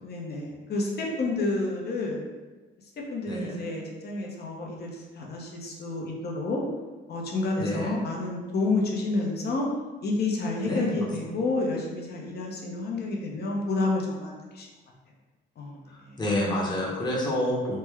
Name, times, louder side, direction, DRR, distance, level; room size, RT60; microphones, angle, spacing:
voice 1, 0.0-2.2 3.1-6.6 7.1-9.7 10.0-14.7 15.6-16.2, left 2 dB, 55° left, -1 dB, 0.8 m, -30 dB
voice 2, 3.3-3.6 7.6-7.9 10.7-10.9 16.2-17.8, left 1 dB, 20° left, -4 dB, 0.9 m, -28 dB
3.3 x 2.2 x 3.4 m, 1.2 s
cardioid pair, 90°, 20 cm